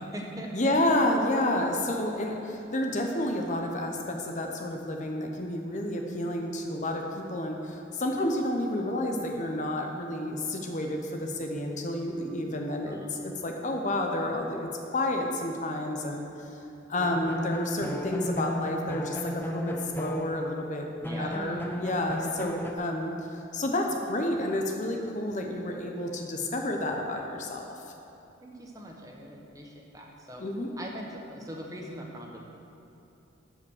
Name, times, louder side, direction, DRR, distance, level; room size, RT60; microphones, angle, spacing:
voice 1, 0.0-0.8 12.5-13.1 21.0-21.6 28.4-30.4 30.8-32.4, equal, 15° right, 0 dB, 1.1 m, -41 dB
voice 2, 0.5-16.6 16.9-20.9 21.2-27.6 30.4-30.7, left 1 dB, 40° left, 2 dB, 0.8 m, -30 dB
sound 1, 17.0-20.7 21.0-22.7, left 1 dB, 10° left, 0.5 m, -35 dB
13.0 x 5.0 x 6.5 m, 2.8 s
head